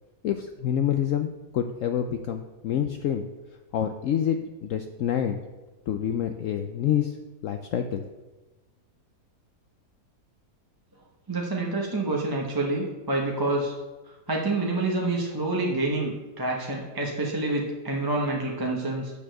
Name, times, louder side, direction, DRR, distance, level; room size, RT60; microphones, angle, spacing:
voice 1, 0.2-3.2 3.7-5.4 5.9-7.2 7.4-8.0, left 9 dB, 70° left, 7 dB, 0.8 m, -27 dB
voice 2, 11.3-13.7 14.1-19.1, right 2 dB, 15° right, -1 dB, 0.9 m, -27 dB
7.0 x 6.9 x 6.6 m, 1.1 s
omnidirectional pair, 1.8 m